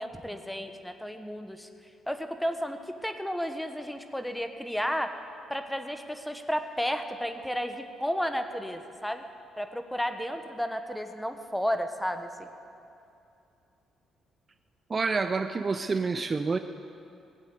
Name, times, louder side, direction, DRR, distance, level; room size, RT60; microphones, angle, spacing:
voice 1, 0.0-1.7 2.1-5.1 5.5-9.2 9.6-12.5, equal, 5° left, 7 dB, 1.2 m, -32 dB
voice 2, 14.9-16.6, right 4 dB, 35° right, 9 dB, 0.5 m, -28 dB
18.5 x 8.2 x 8.3 m, 2.6 s
cardioid pair, 90°, 0 cm